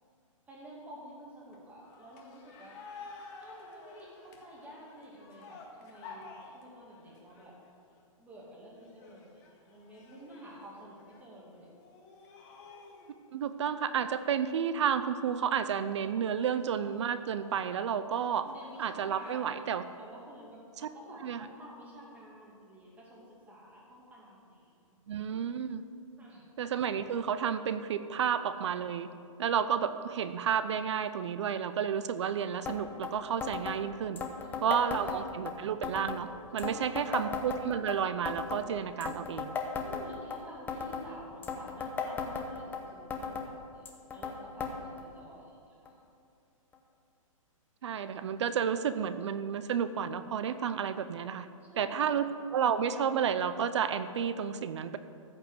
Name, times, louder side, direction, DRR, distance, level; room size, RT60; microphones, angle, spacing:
voice 1, 0.5-2.8 3.4-7.5 8.2-11.7 18.4-19.6 19.9-24.6 26.2-26.5 34.3-35.0 36.6-37.2 39.8-43.8 44.1-45.6 45.8-46.0 51.6-52.3, equal, 10° right, -4 dB, 2.3 m, -50 dB
sound 1, 1.5-8.0 8.7-13.2 13.7-13.8 14.1-14.2 14.9-15.2 15.6-17.3 18.0-19.9, left 4 dB, 35° left, 1.8 m, -52 dB
voice 2, 13.3-18.5 18.8-19.8 21.2-21.4 25.1-25.8 26.6-29.1 29.4-34.2 34.6-39.5 47.8-51.5 51.8-55.0, right 8 dB, 55° right, 12 dB, 0.6 m, -31 dB
sound 2, 32.7-32.8 33.0-33.1 33.4-33.8 34.2-35.5 35.8-36.2 36.6-38.0 38.3-38.6 39.0-40.4 40.7-41.1 41.4-42.8 43.1-43.5 43.9-44.3 44.6-44.7 45.0-45.1 45.9-46.0 46.7-46.8, left 6 dB, 10° left, 0.8 m, -36 dB
14.0 x 5.5 x 7.9 m, 2.4 s
hypercardioid pair, 155°, 18 cm